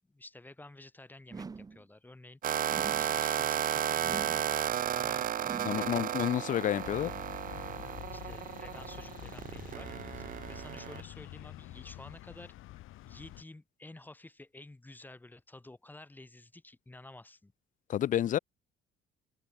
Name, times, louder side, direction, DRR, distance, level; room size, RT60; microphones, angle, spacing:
voice 1, 0.1-2.4 3.0-4.6 4.9-5.3 5.7-6.0 8.1-12.5 13.0-17.5, left 2 dB, 10° left, 3.2 m, -51 dB
sound 1, 1.3-1.9 2.7-3.2 4.0-4.6 5.4-6.0, right 4 dB, 20° right, 1.1 m, -44 dB
sound 2, 2.4-11.0, right 10 dB, 45° right, 0.8 m, -33 dB
voice 2, 5.6-7.1 17.9-18.4, left 11 dB, 40° left, 0.5 m, -29 dB
sound 3, 6.8-13.4, left 16 dB, 80° left, 3.3 m, -47 dB
cardioid pair, 155°, 20 cm